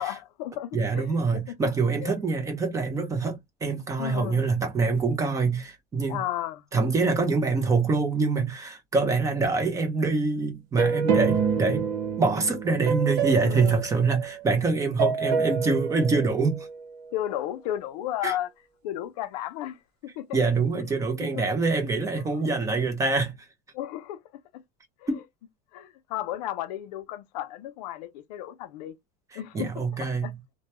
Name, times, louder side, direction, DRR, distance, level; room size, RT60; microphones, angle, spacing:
voice 1, 0.0-1.6 2.0-2.1 4.0-4.5 6.1-6.6 13.4-13.9 17.1-18.5 18.8-20.4 21.2-21.4 22.3-22.4 23.7-24.2 24.5-24.6 25.0-25.1 25.7-29.0 29.3-30.3, left 12 dB, 80° left, 0.5 m, -34 dB
voice 2, 0.7-6.2 6.7-11.9 12.2-16.7 18.2-18.3 20.3-23.3 25.1-25.2 29.5-30.4, right 4 dB, 15° right, 0.7 m, -25 dB
sound 1, 10.8-14.6 15.0-17.0, right 5 dB, 75° right, 0.8 m, -27 dB
2.2 x 2.2 x 2.9 m
supercardioid pair, 155°, 20 cm